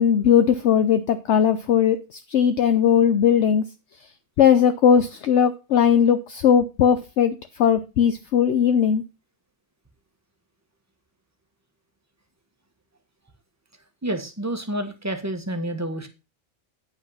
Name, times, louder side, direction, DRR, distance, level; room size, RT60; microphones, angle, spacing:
voice 1, 0.0-3.6 4.4-9.0, left 8 dB, 65° left, 0.9 m, -19 dB
voice 2, 14.0-16.1, right 1 dB, 10° right, 1.3 m, -29 dB
9.3 x 5.6 x 5.6 m
omnidirectional pair, 1.4 m